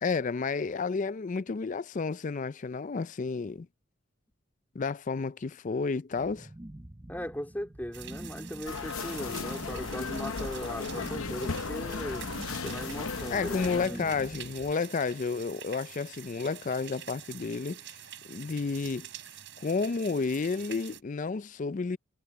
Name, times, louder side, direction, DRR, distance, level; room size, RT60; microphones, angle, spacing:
voice 1, 0.0-3.7 4.7-6.5 13.3-17.8 18.3-19.1 19.6-22.0, left 4 dB, 35° left, 0.4 m, -31 dB
sound 1, 6.1-14.7, right 1 dB, 15° right, 0.9 m, -46 dB
voice 2, 7.1-12.3 12.6-14.2, equal, 10° left, 3.3 m, -38 dB
sound 2, 7.9-21.0, right 11 dB, 60° right, 4.6 m, -47 dB
sound 3, 8.7-13.9, left 4 dB, 80° left, 0.8 m, -35 dB
head